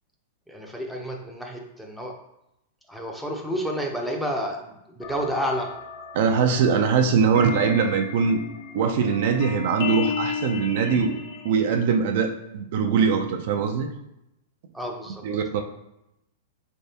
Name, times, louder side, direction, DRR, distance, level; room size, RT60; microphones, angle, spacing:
voice 1, 0.5-2.1 2.9-5.7 14.7-15.2, equal, ahead, 0 dB, 0.5 m, -30 dB
sound 1, 5.0-11.7, left 6 dB, 60° left, 0.7 m, -34 dB
voice 2, 6.1-8.4 8.7-11.2 11.4-13.9 15.2-15.6, right 6 dB, 60° right, 5 dB, 0.4 m, -22 dB
3.4 x 3.2 x 2.7 m, 0.85 s
hypercardioid pair, 130°, 0 cm